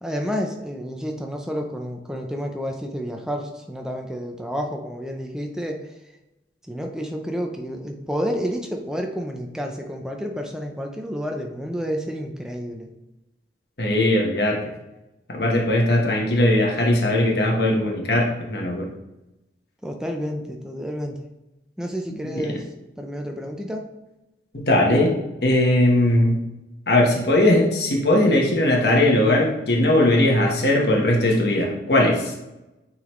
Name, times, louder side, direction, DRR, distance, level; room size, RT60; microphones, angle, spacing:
voice 1, 0.0-5.9 6.7-12.9 19.8-21.2 21.8-22.6 23.0-23.9, equal, 5° right, 2 dB, 0.5 m, -30 dB
voice 2, 13.8-14.6 15.3-18.9 22.3-22.5 24.5-25.1 25.4-26.4 26.9-32.3, left 1 dB, 65° left, 0 dB, 1.2 m, -19 dB
8.9 x 4.0 x 3.1 m, 0.96 s
head